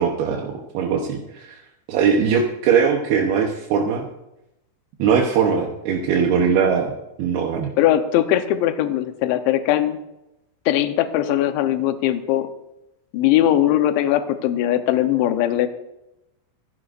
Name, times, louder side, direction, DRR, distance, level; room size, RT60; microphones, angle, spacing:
voice 1, 0.0-1.6 1.9-4.1 5.0-6.9 7.2-7.7, right 6 dB, 75° right, 1 dB, 2.4 m, -20 dB
voice 2, 7.8-10.0 10.7-12.5 13.1-15.7, left 12 dB, 75° left, 7 dB, 2.9 m, -20 dB
25.0 x 11.0 x 2.5 m, 0.90 s
omnidirectional pair, 5.8 m